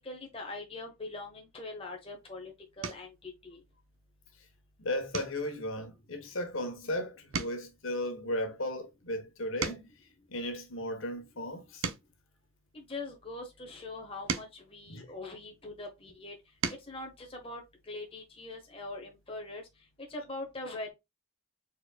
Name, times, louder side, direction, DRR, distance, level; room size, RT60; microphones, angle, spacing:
voice 1, 0.0-3.6 12.7-16.3 16.9-19.6 20.0-20.9, left 2 dB, 25° left, 1.0 m, -42 dB
sound 1, 1.9-2.2 2.8-3.2 3.7-4.1 4.4-4.6 5.1-6.9 7.2-10.1 10.7-13.2 13.9-15.7 16.3-17.0 18.4-18.5 18.8-19.0, right 5 dB, 65° right, 0.7 m, -41 dB
voice 2, 4.8-9.9 10.3-11.9 14.9-15.0, left 1 dB, 65° left, 1.3 m, -35 dB
4.6 x 4.3 x 2.4 m
head